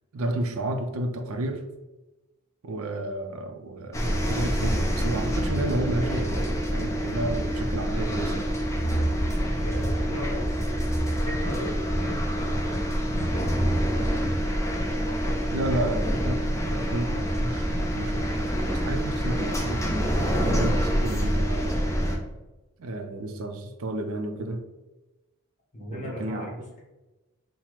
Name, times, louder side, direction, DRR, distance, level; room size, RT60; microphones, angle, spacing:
voice 1, 0.1-1.7 2.6-8.5 15.5-20.1 20.4-21.8 22.8-24.6 25.9-26.5, right 1 dB, 75° right, 6 dB, 0.5 m, -31 dB
sound 1, 3.9-22.2, equal, 15° left, 0.5 m, -26 dB
voice 2, 9.6-12.8 13.1-13.9 14.2-14.6 14.9-15.4 15.8-16.3 25.7-26.6, left 1 dB, 35° left, -4 dB, 1.1 m, -38 dB
5.7 x 2.1 x 3.0 m, 1.1 s
head